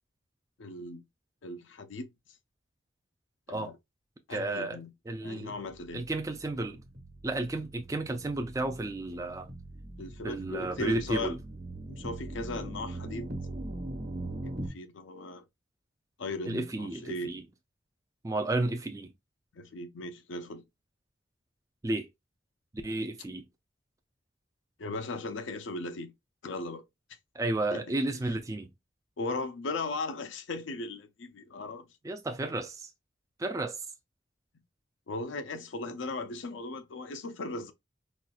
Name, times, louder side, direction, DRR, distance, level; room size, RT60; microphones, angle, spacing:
voice 1, 0.6-1.0 1.4-2.1 3.5-3.8 4.3-4.9 5.2-6.0 10.0-11.4 11.9-13.3 14.4-15.4 16.2-17.4 19.5-20.6 24.8-26.1 26.4-26.8 27.7-28.0 29.2-31.9 35.1-37.7, left 2 dB, 75° left, 0.5 m, -37 dB
voice 2, 4.3-4.8 5.1-5.5 5.9-6.8 7.2-9.5 10.2-11.4 16.5-17.4 18.2-19.1 21.8-22.1 22.8-23.4 27.4-28.7 32.0-32.9 33.4-33.8, right 2 dB, 15° right, 0.3 m, -32 dB
sound 1, 5.7-14.7, right 1 dB, 55° right, 1.2 m, -41 dB
4.2 x 2.4 x 2.3 m
head